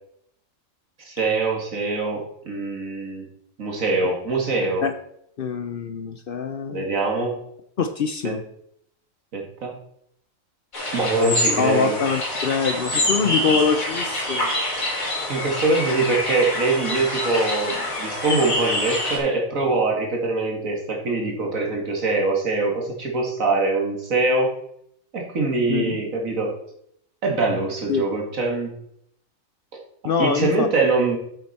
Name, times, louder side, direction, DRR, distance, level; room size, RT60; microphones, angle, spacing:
voice 1, 1.1-3.3 3.6-4.9 6.7-7.5 8.2-8.4 9.3-9.8 10.9-12.0 15.3-24.5 25.1-26.6 27.2-28.8 30.2-31.2, right 3 dB, 70° right, 0 dB, 2.3 m, -23 dB
voice 2, 5.4-6.9 7.8-8.4 11.6-14.5 25.7-26.0 27.9-28.1 30.0-30.7, left 5 dB, 55° left, 9 dB, 0.6 m, -24 dB
sound 1, 10.7-19.2, left 1 dB, 80° left, 3.3 m, -26 dB
8.1 x 7.7 x 4.2 m, 0.72 s
omnidirectional pair, 1.4 m